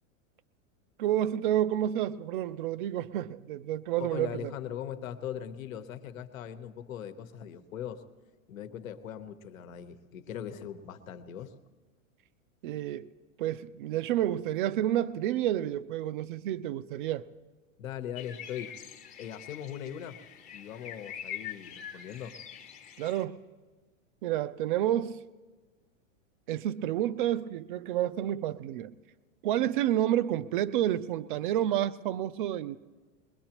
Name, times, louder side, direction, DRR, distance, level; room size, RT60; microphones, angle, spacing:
voice 1, 1.0-4.5 12.6-13.1 13.4-17.3 23.0-23.4 24.2-25.2 26.5-28.9 29.4-32.8, right 12 dB, 40° right, 0.5 m, -29 dB
voice 2, 4.0-8.0 8.5-11.5 17.8-18.8 19.2-20.2 20.5-22.3, left 9 dB, 80° left, 1.2 m, -40 dB
sound 1, 18.2-23.2, left 9 dB, 20° left, 0.8 m, -44 dB
22.0 x 21.0 x 3.0 m
supercardioid pair, 155°, 40 cm